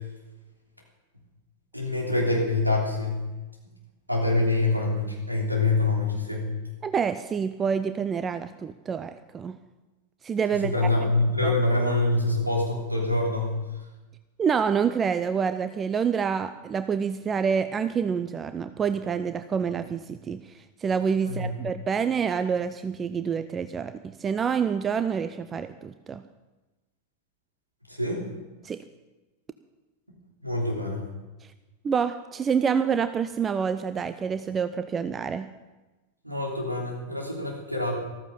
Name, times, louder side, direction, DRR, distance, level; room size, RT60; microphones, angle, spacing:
voice 1, 1.7-3.2 4.1-6.5 10.6-13.6 21.2-21.5 28.0-28.2 30.4-31.0 36.2-38.0, left 2 dB, 85° right, -1 dB, 3.2 m, -25 dB
voice 2, 6.8-9.6 10.2-10.9 11.4-11.5 14.4-26.2 28.6-28.8 31.4-31.5 31.8-35.5, right 6 dB, 20° right, 12 dB, 0.5 m, -27 dB
14.0 x 14.0 x 5.4 m, 1.1 s
figure-of-eight pair, 90°, 0 cm